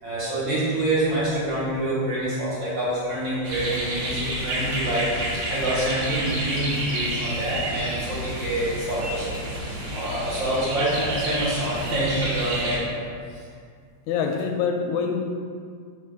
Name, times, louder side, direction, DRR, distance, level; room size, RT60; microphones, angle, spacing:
voice 1, 0.0-9.5 9.9-13.1 13.3-13.4, right 1 dB, 45° right, -9 dB, 2.2 m, -26 dB
sound 1, 3.4-12.8, right 1 dB, 90° right, 2.6 m, -30 dB
voice 2, 14.1-15.2, left 6 dB, 85° left, 3 dB, 2.0 m, -25 dB
4.6 x 4.5 x 5.9 m, 2.1 s
omnidirectional pair, 3.3 m